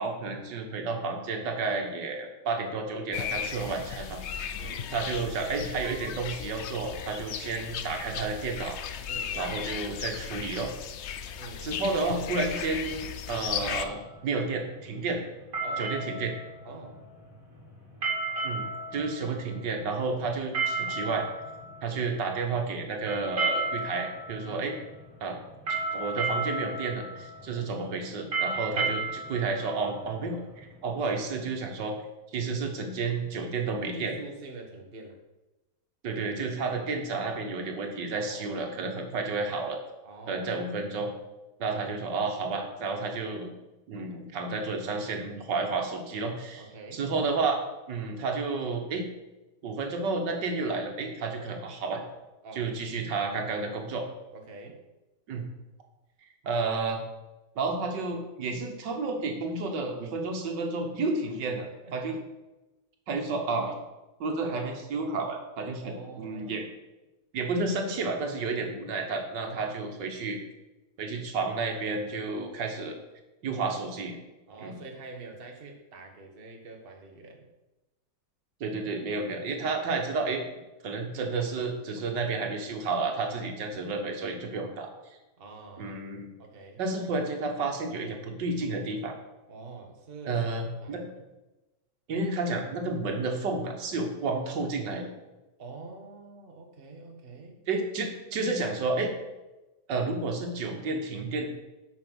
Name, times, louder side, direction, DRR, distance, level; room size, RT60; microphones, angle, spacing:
voice 1, 0.0-4.6 4.9-8.8 9.4-10.7 11.6-15.2 15.8-16.4 18.4-18.6 18.9-21.3 21.8-24.8 25.2-25.4 25.7-32.0 32.3-34.1 36.0-39.8 40.3-41.1 41.6-43.5 43.9-46.6 46.9-47.6 47.9-49.0 49.6-52.0 52.5-54.0 55.3-55.4 56.4-57.0 57.6-61.7 61.9-62.2 63.1-63.8 64.2-66.7 67.3-70.4 71.0-72.9 73.4-74.2 74.6-74.8 78.6-80.4 80.8-84.9 85.8-86.3 86.8-89.1 90.3-91.0 92.1-95.1 97.7-99.1 99.9-101.5, right 3 dB, 80° right, 3 dB, 1.9 m, -31 dB
sound 1, 3.1-13.9, left 8 dB, 75° left, 0.6 m, -36 dB
voice 2, 4.6-4.9 9.1-9.4 11.4-11.7 15.6-15.9 16.6-17.0 24.4-24.7 27.4-27.7 28.7-29.1 33.9-35.2 38.1-38.6 40.0-40.5 46.5-47.1 52.4-52.7 54.3-54.8 61.8-61.9 65.8-66.6 69.4-69.8 74.5-77.5 83.2-83.8 85.4-86.0 86.4-86.8 89.5-91.0 95.6-97.6, right 3 dB, 35° right, 2 dB, 1.4 m, -45 dB
sound 2, 13.6-30.8, right 3 dB, 50° right, 2.7 m, -34 dB
8.6 x 6.1 x 6.2 m, 1.0 s
omnidirectional pair, 1.9 m